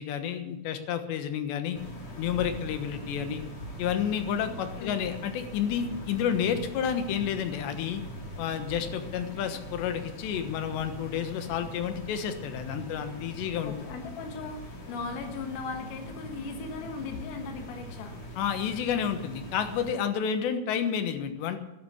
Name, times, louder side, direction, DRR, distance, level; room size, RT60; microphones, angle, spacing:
voice 1, 0.0-1.8 2.2-3.4 3.8-8.0 8.4-13.7 18.4-21.6, left 8 dB, 70° left, 8 dB, 3.2 m, -30 dB
sound 1, 1.7-19.9, equal, 40° left, 3.3 m, -42 dB
voice 2, 4.4-5.1 13.7-18.2, left 4 dB, 90° left, 5 dB, 4.5 m, -38 dB
14.0 x 11.0 x 8.4 m, 0.93 s
omnidirectional pair, 5.7 m